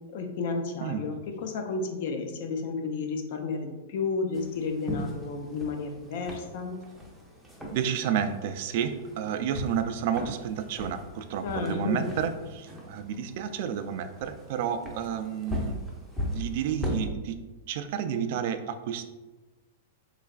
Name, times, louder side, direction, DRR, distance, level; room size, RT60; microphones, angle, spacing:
voice 1, 0.1-6.8 11.4-12.1, left 4 dB, 55° left, 5 dB, 0.5 m, -32 dB
sound 1, 4.3-17.1, left 1 dB, ahead, 0.6 m, -39 dB
voice 2, 7.7-15.8 16.2-17.4 17.7-19.0, right 8 dB, 55° right, 9 dB, 0.3 m, -31 dB
3.7 x 3.2 x 2.4 m, 1.2 s
hypercardioid pair, 145°, 0 cm